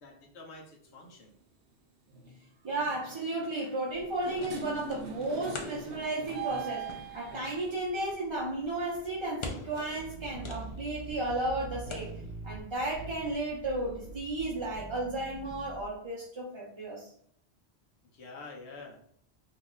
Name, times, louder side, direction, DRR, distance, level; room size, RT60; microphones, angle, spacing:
voice 1, 0.0-1.3 18.1-19.0, left 3 dB, 80° left, 0 dB, 1.1 m, -47 dB
sound 1, 0.9-1.1 2.1-2.4 2.7-7.8, right 6 dB, 80° right, 0.9 m, -42 dB
voice 2, 2.6-12.1 12.4-17.1, right 2 dB, 35° right, -5 dB, 0.6 m, -34 dB
sound 2, 3.9-14.8, left 2 dB, 50° left, 0.3 m, -47 dB
sound 3, 10.0-16.0, right 3 dB, 50° right, 1.1 m, -44 dB
2.8 x 2.4 x 3.8 m, 0.64 s
omnidirectional pair, 1.1 m